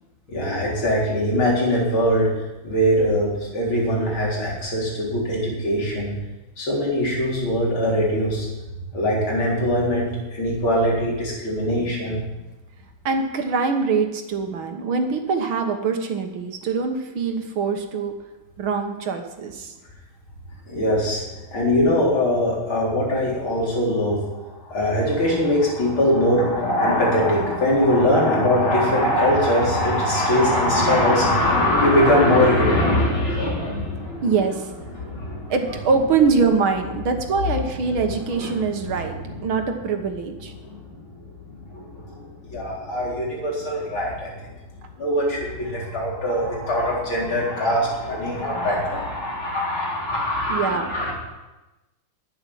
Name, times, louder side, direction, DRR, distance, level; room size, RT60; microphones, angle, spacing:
voice 1, 0.3-2.3 2.6-6.1 6.6-8.5 8.9-12.2 20.7-21.2 21.5-34.4 34.9-35.5 38.3-39.3 40.6-40.8 41.2-41.3 41.7-44.3 45.0-51.1, left 1 dB, 80° left, -3 dB, 5.0 m, -22 dB
voice 2, 13.0-18.1 18.6-19.7 34.2-34.7 35.5-39.2 39.4-40.5 50.5-50.9, right 5 dB, 80° right, 5 dB, 2.2 m, -23 dB
12.0 x 8.9 x 10.0 m, 1.1 s
omnidirectional pair, 2.2 m